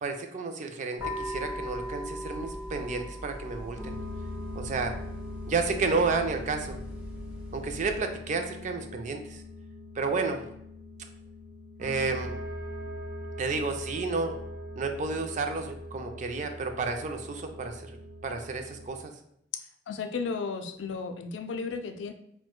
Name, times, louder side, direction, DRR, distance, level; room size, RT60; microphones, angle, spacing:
voice 1, 0.0-4.0 4.5-4.9 5.5-6.8 7.5-9.4 10.0-10.4 11.8-12.3 13.4-14.3 14.8-18.0 18.2-19.1, right 4 dB, 45° right, 6 dB, 0.3 m, -31 dB
sound 1, 1.0-8.0, equal, 10° right, 1.2 m, -39 dB
sound 2, 3.8-18.9, left 1 dB, 85° right, 0.7 m, -41 dB
voice 2, 19.9-22.1, left 4 dB, 90° left, 7 dB, 0.3 m, -34 dB
4.4 x 2.1 x 2.2 m, 0.75 s
head